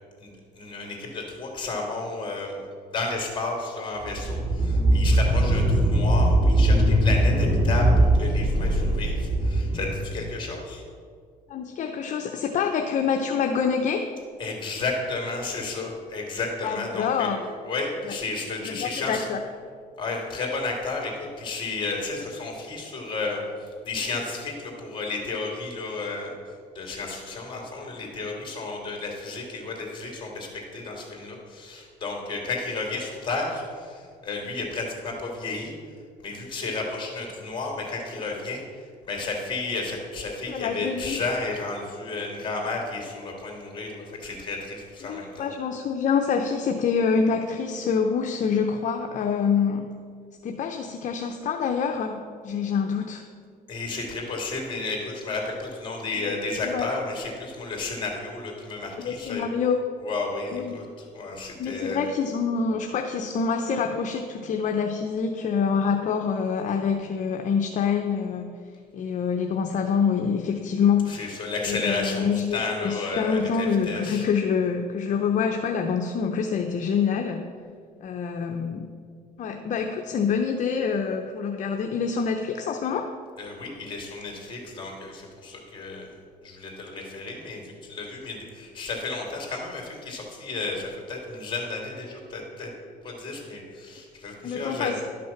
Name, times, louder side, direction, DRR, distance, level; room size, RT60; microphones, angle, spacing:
voice 1, 0.2-2.7 2.9-10.8 14.4-17.3 17.7-19.3 20.0-26.3 26.7-35.7 36.2-45.5 53.7-59.4 60.0-62.0 71.1-74.2 83.4-86.1 86.4-92.7 93.0-95.0, left 3 dB, 30° left, 0 dB, 2.9 m, -32 dB
sound 1, 4.0-10.4, right 1 dB, 25° right, 2.2 m, -21 dB
voice 2, 11.5-14.1 16.6-17.4 18.1-18.2 18.6-19.4 40.5-41.2 45.0-49.9 50.4-53.2 56.3-56.4 56.6-56.9 59.0-59.8 60.5-60.8 61.6-68.6 68.9-71.4 71.7-77.4 78.0-78.9 79.4-83.1 94.4-95.0, left 6 dB, 50° left, 4 dB, 0.7 m, -26 dB
12.0 x 6.1 x 5.9 m, 2.1 s
cardioid pair, 115°, 16 cm